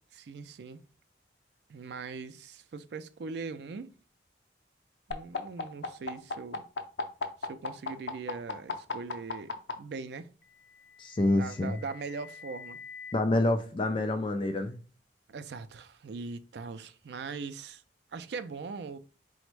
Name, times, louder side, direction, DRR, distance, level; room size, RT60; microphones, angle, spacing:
voice 1, 0.1-0.8 1.7-3.9 5.1-6.6 7.4-10.3 11.4-12.8 15.3-17.8 18.1-19.0, right 4 dB, 65° right, 0.4 m, -41 dB
sound 1, 5.1-9.7 10.9-13.1, left 4 dB, 85° left, 0.6 m, -37 dB
voice 2, 11.0-11.8 13.1-14.8, left 2 dB, 30° left, 0.3 m, -27 dB
4.0 x 2.1 x 4.5 m
head